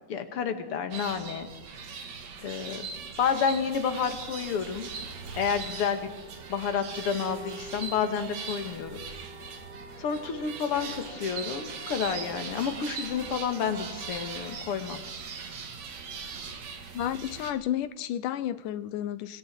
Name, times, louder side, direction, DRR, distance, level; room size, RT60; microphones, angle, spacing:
voice 1, 0.1-1.5 2.4-2.9 3.2-4.9 5.3-6.1 6.5-9.0 10.0-15.0, left 7 dB, 50° left, 8 dB, 2.6 m, -30 dB
sound 1, 0.9-17.5, right 5 dB, 60° right, 3.1 m, -40 dB
sound 2, 4.8-14.6, right 2 dB, 45° right, 3.5 m, -48 dB
voice 2, 16.9-19.4, left 11 dB, 90° left, 14 dB, 2.5 m, -32 dB
26.0 x 24.5 x 4.6 m, 1.1 s
omnidirectional pair, 3.6 m